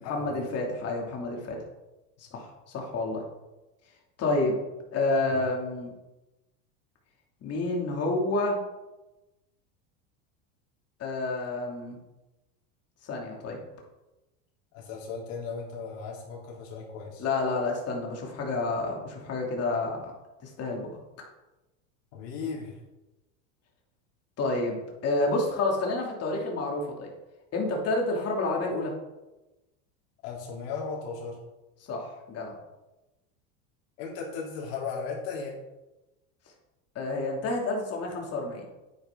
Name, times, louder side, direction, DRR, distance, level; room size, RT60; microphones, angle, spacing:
voice 1, 0.0-1.6 2.2-2.5 2.7-3.2 4.2-4.6 4.9-5.9 7.4-8.6 11.0-12.0 13.0-13.6 17.2-20.1 20.4-20.9 24.4-27.1 27.5-28.9 31.9-32.5 36.9-38.6, left 2 dB, 40° left, 0 dB, 2.9 m, -29 dB
voice 2, 14.7-17.2 22.1-22.7 30.2-31.4 34.0-35.6, left 5 dB, 75° left, -2 dB, 3.8 m, -36 dB
9.6 x 9.2 x 3.9 m, 1.0 s
supercardioid pair, 125°, 39 cm